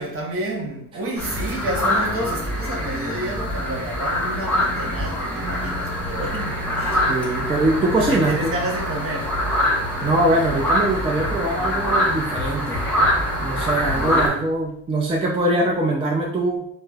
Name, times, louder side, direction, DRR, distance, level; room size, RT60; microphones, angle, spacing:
voice 1, 0.0-7.0 8.0-9.4 13.9-14.4, right 1 dB, 45° right, 0.7 m, -30 dB
sound 1, 1.2-14.3, equal, 5° left, 0.9 m, -24 dB
voice 2, 7.1-8.5 10.0-12.8 13.4-16.7, right 1 dB, 20° right, 0.4 m, -22 dB
3.0 x 2.0 x 2.3 m
cardioid pair, 90°, 30 cm